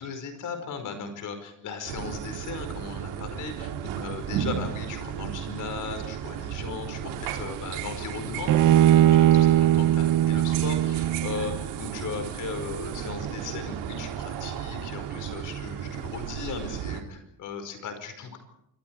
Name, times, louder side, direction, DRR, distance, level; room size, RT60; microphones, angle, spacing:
voice 1, 0.0-18.4, left 5 dB, 50° left, 7 dB, 5.2 m, -37 dB
sound 1, 1.8-17.0, right 9 dB, 85° right, 3.1 m, -34 dB
Bowed string instrument, 8.5-11.8, right 12 dB, 50° right, 0.8 m, -20 dB
26.5 x 24.5 x 4.8 m, 0.80 s
cardioid pair, 165°, 39 cm